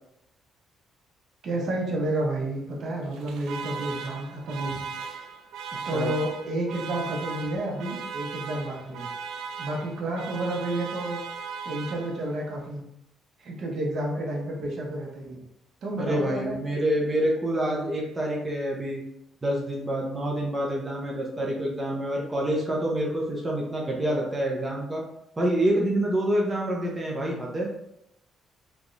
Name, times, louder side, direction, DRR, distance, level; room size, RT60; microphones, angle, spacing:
voice 1, 1.4-4.8 5.8-9.1 9.6-11.2 11.6-12.8 13.4-15.4 15.8-16.6, right 1 dB, 55° right, -1 dB, 0.9 m, -30 dB
Alarm, 3.0-12.5, right 5 dB, 85° right, 0.3 m, -38 dB
voice 2, 16.0-19.0 19.4-25.0 25.4-27.7, right 1 dB, 20° right, -3 dB, 0.7 m, -27 dB
3.4 x 3.1 x 2.6 m, 0.81 s
cardioid pair, 125°, 0 cm